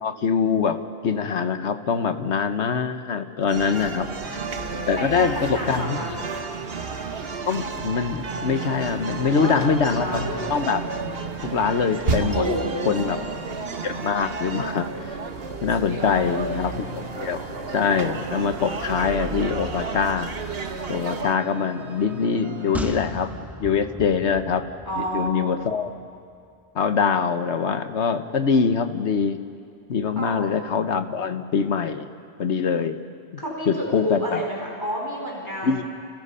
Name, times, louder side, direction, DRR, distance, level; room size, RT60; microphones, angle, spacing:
voice 1, 0.0-4.4 4.9-6.2 7.5-10.8 11.4-12.5 12.8-13.2 13.8-15.2 15.6-17.5 17.7-20.3 20.9-24.6 25.0-25.9 26.7-29.4 29.9-32.1 32.4-33.0 33.7-34.4 35.6-35.8, left 6 dB, 80° left, 9 dB, 1.4 m, -24 dB
sound 1, 3.5-21.4, right 4 dB, 60° right, 1.4 m, -32 dB
voice 2, 3.7-6.1 9.2-10.4 12.2-13.1 15.9-16.8 24.9-25.5 30.2-30.6 33.4-35.8, equal, 20° left, -2 dB, 4.7 m, -31 dB
sound 2, 4.2-22.9, right 4 dB, 90° right, 1.6 m, -41 dB
sound 3, 22.7-26.2 26.5-26.6, equal, ahead, 1.4 m, -36 dB
30.0 x 30.0 x 5.6 m, 2.4 s
omnidirectional pair, 1.1 m